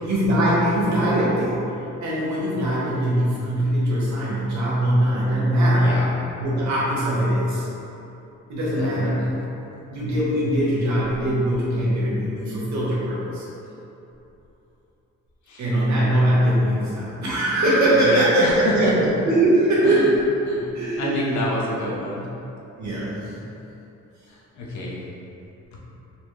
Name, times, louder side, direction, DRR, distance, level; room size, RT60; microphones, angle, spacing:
voice 1, 0.0-1.6 2.0-6.0 6.4-7.7 8.5-9.3 9.9-13.5 15.6-20.1 20.7-21.4 22.8-23.4, right 1 dB, 65° right, -7 dB, 1.1 m, -21 dB
voice 2, 5.8-6.1 8.7-9.3 15.5-15.7 17.9-19.1 19.8-20.1 20.5-22.3 24.3-25.0, equal, 65° left, -4 dB, 0.8 m, -27 dB
3.9 x 2.4 x 3.1 m, 2.9 s
cardioid pair, 90°, 30 cm